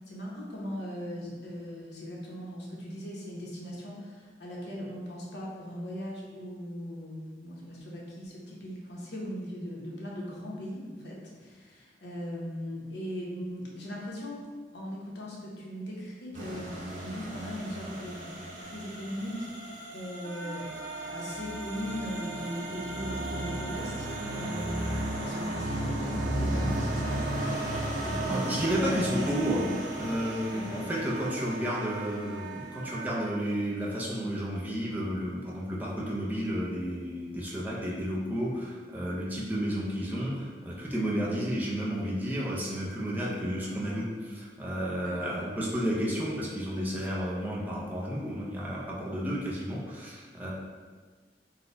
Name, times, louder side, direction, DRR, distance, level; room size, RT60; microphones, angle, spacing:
voice 1, 0.1-14.4 14.7-18.3 18.6-19.4 19.6-20.7 21.0-27.2 28.0-28.6 28.9-29.6 30.5-30.8 45.0-45.4, equal, 70° left, -4 dB, 0.9 m, -39 dB
sound 1, 16.3-32.5, right 1 dB, 45° right, 0.7 m, -35 dB
Wind instrument woodwind instrument, 20.2-33.3, right 5 dB, 85° right, 0.5 m, -42 dB
voice 2, 28.3-29.7 29.9-50.5, equal, 10° right, -6 dB, 0.5 m, -32 dB
4.2 x 2.2 x 3.8 m, 1.5 s
head